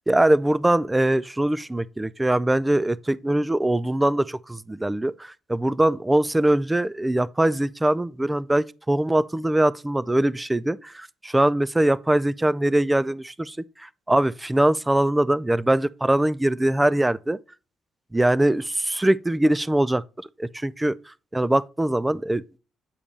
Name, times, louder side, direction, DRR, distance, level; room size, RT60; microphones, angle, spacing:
voice 1, 0.1-13.6 13.8-17.4 18.1-20.0 20.4-21.0 21.3-22.4, right 1 dB, 10° right, 0.4 m, -22 dB
8.6 x 5.2 x 3.2 m
cardioid pair, 90°, 0 cm